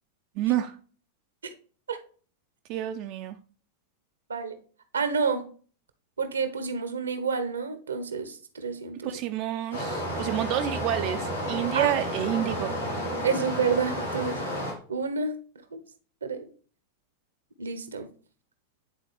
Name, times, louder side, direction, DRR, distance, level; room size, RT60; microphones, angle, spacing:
voice 1, 0.4-0.8 2.7-3.4 9.0-12.7, right 13 dB, 40° right, 7 dB, 0.4 m, -29 dB
voice 2, 4.9-5.4 6.2-9.1 11.7-11.9 13.2-14.4 14.9-15.4 15.7-15.8 16.2-16.4 17.6-18.1, right 5 dB, 70° right, 9 dB, 0.8 m, -29 dB
Stream, 9.7-14.7, equal, 85° left, 2.6 m, -31 dB
9.8 x 4.1 x 3.2 m, 0.41 s
figure-of-eight pair, 90°, 0 cm